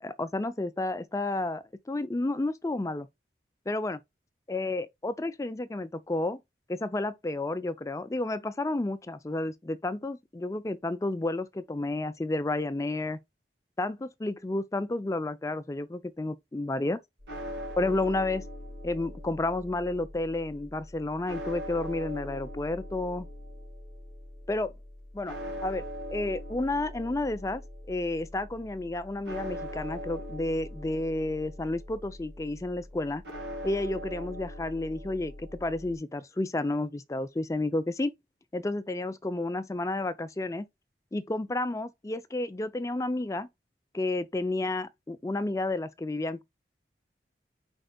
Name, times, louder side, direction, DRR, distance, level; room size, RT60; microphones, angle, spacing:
voice 1, 0.0-3.1 3.7-4.0 4.5-6.4 6.7-13.2 13.8-17.0 17.8-18.4 18.8-23.3 24.5-24.7 25.1-25.4 25.6-25.8 26.1-27.6 27.9-33.2 33.6-38.1 38.5-40.7 41.1-43.5 43.9-46.4, left 2 dB, 20° left, 0.4 m, -31 dB
sound 1, 17.2-36.0, equal, 80° right, 1.8 m, -41 dB
5.0 x 4.3 x 2.2 m
head